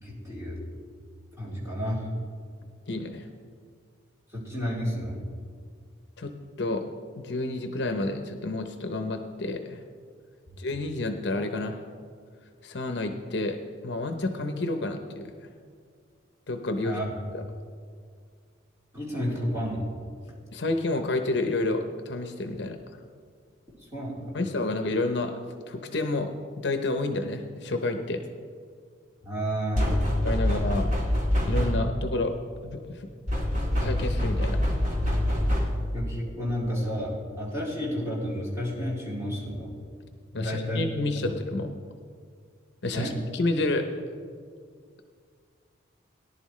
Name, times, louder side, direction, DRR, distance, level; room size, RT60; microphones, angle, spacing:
voice 1, 0.0-0.6 1.4-2.1 4.3-5.2 10.5-10.6 16.8-17.1 18.9-19.9 23.9-24.3 29.2-30.1 30.4-30.6 35.9-37.1 37.4-39.7 40.4-41.3 42.9-43.2, equal, 15° right, -7 dB, 3.7 m, -31 dB
voice 2, 2.9-3.3 6.2-6.3 6.6-6.8 7.2-9.8 10.6-11.8 12.6-13.6 13.8-15.3 16.5-17.0 17.3-17.4 20.5-22.8 24.3-25.3 25.7-26.3 26.6-28.2 30.2-30.9 31.5-32.3 32.6-33.1 33.8-34.6 40.3-41.7 42.8-43.9, left 2 dB, 60° left, 6 dB, 0.7 m, -29 dB
sound 1, 29.7-32.0 33.3-35.9, left 1 dB, 40° right, 2.1 m, -25 dB
18.0 x 11.0 x 3.2 m, 2.1 s
head